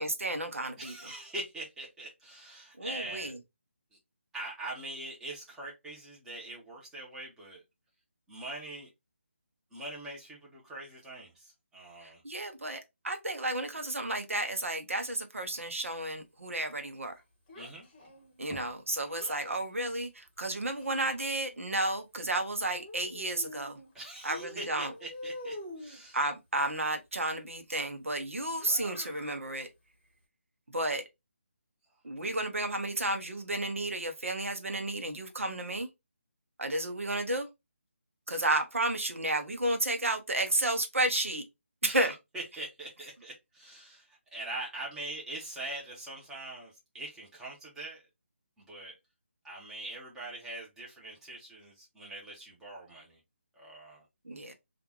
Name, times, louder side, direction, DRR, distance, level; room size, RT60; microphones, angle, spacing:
voice 1, 0.0-0.9 2.8-3.4 12.0-17.1 18.4-23.8 24.2-24.9 26.1-29.7 30.7-31.0 32.0-35.9 36.6-37.5 38.3-41.4 41.8-42.1 54.2-54.5, right 2 dB, 80° right, 0.8 m, -32 dB
voice 2, 0.8-3.3 4.3-7.6 8.3-8.9 9.7-12.2 17.5-17.9 23.9-26.2 41.8-48.0 48.6-48.9 49.4-53.2 53.6-54.0, right 2 dB, 5° right, 1.0 m, -43 dB
Child speech kid speaking, 17.5-19.5 20.4-21.6 22.8-23.9 24.3-26.0 28.6-29.4, left 1 dB, 20° left, 1.2 m, -46 dB
3.5 x 2.5 x 3.0 m
figure-of-eight pair, 155°, 7 cm